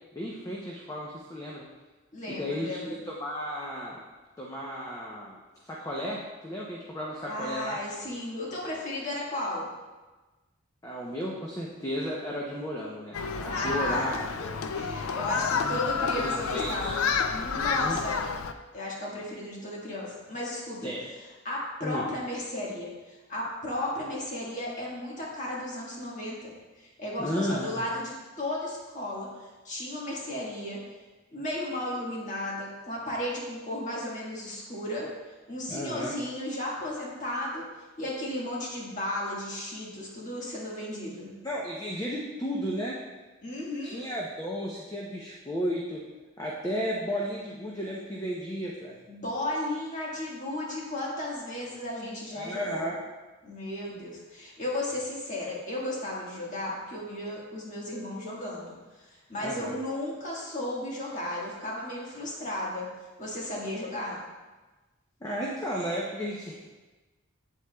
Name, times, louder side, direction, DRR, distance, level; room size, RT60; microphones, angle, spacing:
voice 1, 0.1-1.6 2.4-4.0 4.4-7.8 10.8-14.6 15.6-16.1 16.4-17.0 17.8-18.0 20.8-21.1 21.8-22.0 27.2-27.8 35.7-36.1 41.4-43.0 43.8-46.0 46.4-49.0 52.3-53.0 59.4-59.8 65.2-66.6, equal, 15° left, -4 dB, 0.7 m, -34 dB
voice 2, 2.1-3.0 7.3-9.7 13.5-14.3 14.7-18.2 18.7-20.9 21.4-30.8 31.3-35.1 35.5-37.7 38.0-41.4 43.4-44.1 49.1-52.9 53.4-62.9 63.2-64.2, left 1 dB, 35° left, -4 dB, 1.6 m, -34 dB
Human group actions, 13.1-18.5, left 5 dB, 85° left, 0.4 m, -30 dB
8.3 x 7.8 x 2.3 m, 1.2 s
head